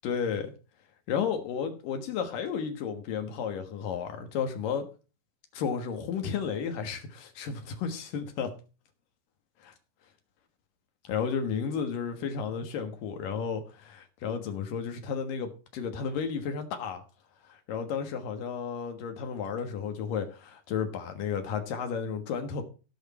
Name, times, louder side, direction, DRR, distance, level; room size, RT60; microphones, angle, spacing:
voice 1, 0.0-0.5 1.1-4.9 5.5-8.5 9.6-9.7 11.0-17.0 17.7-22.6, left 6 dB, 85° left, 3.1 m, -33 dB
17.0 x 6.3 x 4.3 m
omnidirectional pair, 3.8 m